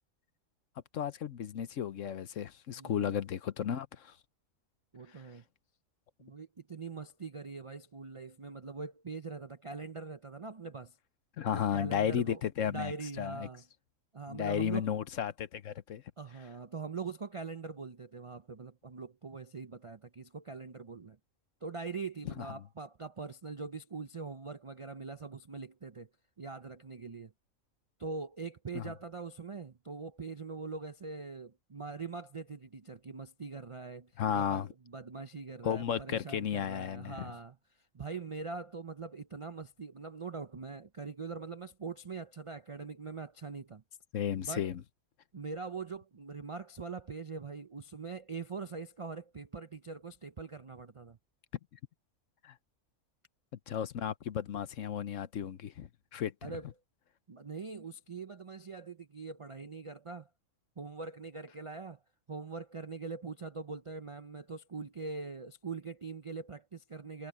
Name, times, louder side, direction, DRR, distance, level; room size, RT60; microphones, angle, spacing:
voice 1, 0.9-4.2 5.1-5.2 11.4-13.5 14.3-16.0 22.2-22.5 28.7-28.9 34.2-34.7 35.6-37.3 44.1-44.8 52.4-52.5 53.7-56.5, left 9 dB, 65° left, 1.1 m, -34 dB
voice 2, 2.7-3.1 4.9-5.4 6.2-11.0 11.5-13.6 14.1-14.9 16.2-21.2 21.6-26.1 26.4-27.3 28.0-37.6 37.9-43.8 44.4-44.7 45.3-51.2 56.4-56.7 57.3-60.3 60.8-62.0 62.3-67.3, right 4 dB, 55° right, 0.3 m, -43 dB
omnidirectional pair, 1.5 m